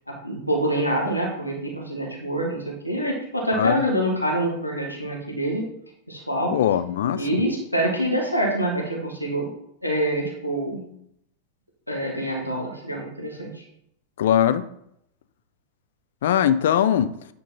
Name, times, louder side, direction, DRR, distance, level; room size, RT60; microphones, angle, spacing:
voice 1, 0.1-5.7 6.1-6.6 7.1-9.5 9.8-10.9 11.9-13.6, right 1 dB, 85° left, -1 dB, 1.4 m, -26 dB
voice 2, 6.5-7.4 14.2-14.7 16.2-17.1, left 10 dB, 60° left, 12 dB, 0.4 m, -21 dB
8.9 x 3.9 x 4.1 m, 0.76 s
figure-of-eight pair, 90°, 0 cm